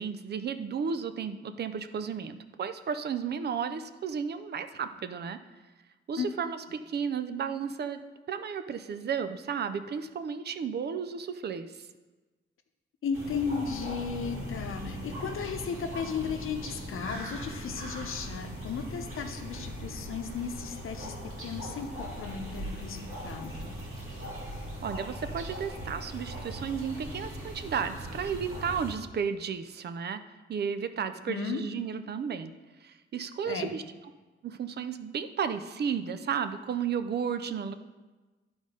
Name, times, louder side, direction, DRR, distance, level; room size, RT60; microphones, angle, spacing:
voice 1, 0.0-5.4 6.1-8.0 8.3-11.9 24.8-30.2 30.5-32.5 32.8-33.8 34.4-37.7, right 7 dB, 55° right, 10 dB, 0.4 m, -33 dB
voice 2, 13.0-23.7 31.3-31.6 33.5-33.7, left 6 dB, 80° left, 6 dB, 0.8 m, -35 dB
sound 1, 13.1-28.9, equal, 85° right, 2.3 m, -39 dB
11.5 x 3.9 x 5.0 m, 1.2 s
wide cardioid pair, 165°, 21 cm